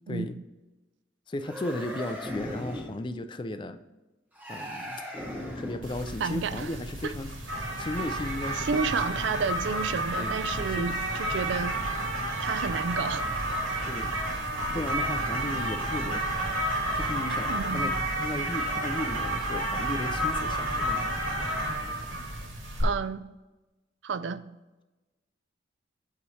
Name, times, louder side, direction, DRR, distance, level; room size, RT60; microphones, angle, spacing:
voice 1, 1.3-3.8 4.5-5.0 5.6-7.3 7.8-8.8 10.2-11.2 13.8-14.1 14.7-16.4 16.9-21.0, left 1 dB, 25° left, 10 dB, 0.4 m, -35 dB
sound 1, 1.4-3.0 4.4-6.0, equal, 10° right, 1.0 m, -38 dB
sound 2, 5.8-22.8, right 1 dB, 85° right, 1.7 m, -31 dB
voice 2, 6.2-6.8 7.0-7.1 8.6-11.8 12.4-13.3 17.5-17.9 22.8-23.3 24.0-24.4, right 5 dB, 65° right, 14 dB, 0.4 m, -31 dB
8.4 x 3.2 x 5.4 m, 1.1 s
head